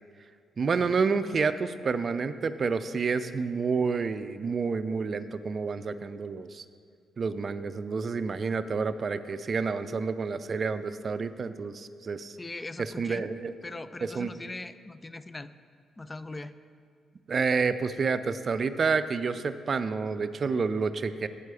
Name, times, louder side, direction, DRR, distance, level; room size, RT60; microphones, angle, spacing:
voice 1, 0.6-6.6 7.2-12.4 12.8-13.5 14.0-14.3 17.3-21.3, right 5 dB, 50° right, 12 dB, 0.4 m, -29 dB
Strum, 0.7-5.0, equal, 60° left, 1.8 m, -56 dB
voice 2, 12.4-13.2 13.6-15.5 16.0-16.5, left 2 dB, 25° left, 13 dB, 0.4 m, -40 dB
8.4 x 4.6 x 6.9 m, 2.2 s
supercardioid pair, 50°, 0 cm